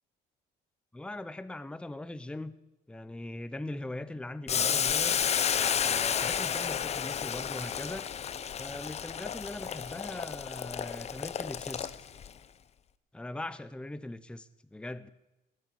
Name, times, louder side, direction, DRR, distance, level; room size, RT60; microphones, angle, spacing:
voice 1, 0.9-2.6 2.9-5.2 5.8-8.1 8.6-12.1 13.1-15.1, left 2 dB, 5° left, 14 dB, 0.7 m, -41 dB
Boiling, 4.5-12.3, left 8 dB, 40° left, 0.7 m, -31 dB
19.5 x 8.9 x 8.5 m, 0.95 s
cardioid pair, 110°, 17 cm